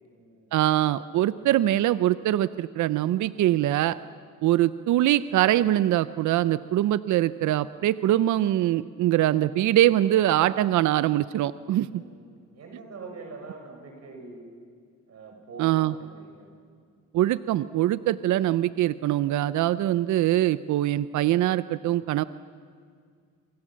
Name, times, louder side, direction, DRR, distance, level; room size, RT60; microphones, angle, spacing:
voice 1, 0.0-0.6 11.8-14.4 15.1-16.5, right 3 dB, 55° right, 3 dB, 6.7 m, -44 dB
voice 2, 0.5-4.0 4.4-11.9 15.6-15.9 17.1-22.2, right 13 dB, 75° right, 15 dB, 0.7 m, -23 dB
27.5 x 24.5 x 7.5 m, 2.1 s
cardioid pair, 90°, 30 cm